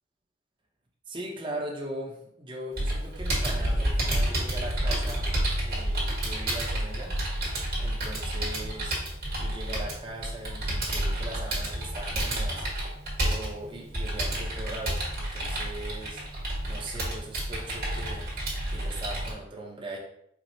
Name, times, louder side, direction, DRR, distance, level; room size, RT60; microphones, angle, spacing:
voice 1, 1.1-5.3 5.6-7.2 7.8-9.0 9.4-16.2 16.6-18.3 18.7-20.0, right 1 dB, 25° right, -1 dB, 0.7 m, -40 dB
Computer keyboard, 2.8-19.3, right 1 dB, 55° right, 1.5 m, -30 dB
4.6 x 2.0 x 3.9 m, 0.72 s
head